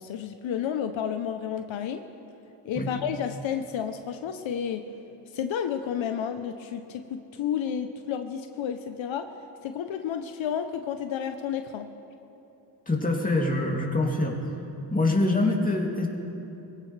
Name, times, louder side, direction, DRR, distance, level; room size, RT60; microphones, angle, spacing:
voice 1, 0.0-2.0 2.6-4.9 5.3-9.3 9.6-11.9, left 8 dB, 75° left, 7 dB, 0.8 m, -31 dB
voice 2, 12.9-14.4 14.9-16.1, left 2 dB, 15° left, -1 dB, 2.6 m, -24 dB
23.0 x 16.0 x 3.3 m, 3.0 s
cardioid pair, 75°, 47 cm